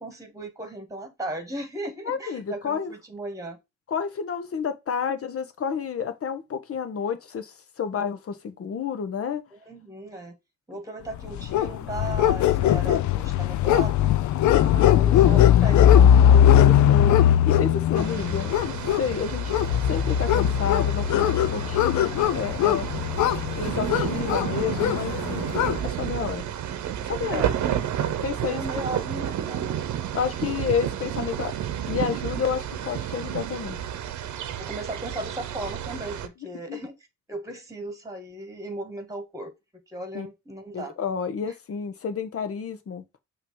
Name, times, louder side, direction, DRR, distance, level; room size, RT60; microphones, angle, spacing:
voice 1, 0.0-3.6 9.5-10.4 10.7-14.1 14.6-16.5 27.3-27.6 28.5-29.7 34.6-36.9 37.3-39.5 39.9-41.0 41.4-41.5, right 1 dB, 10° right, 2.1 m, -36 dB
voice 2, 2.1-2.9 3.9-9.4 14.5-15.5 15.9-19.5 19.9-22.9 23.6-25.5 25.8-26.4 27.0-27.5 28.2-28.6 30.1-31.5 31.9-33.8 36.7-36.8 40.1-40.3 40.7-43.0, left 6 dB, 50° left, 1.2 m, -30 dB
sound 1, 11.2-25.8, left 10 dB, 70° left, 0.7 m, -20 dB
sound 2, 17.9-36.3, right 10 dB, 70° right, 0.9 m, -31 dB
5.8 x 3.2 x 5.6 m
cardioid pair, 90°, 30 cm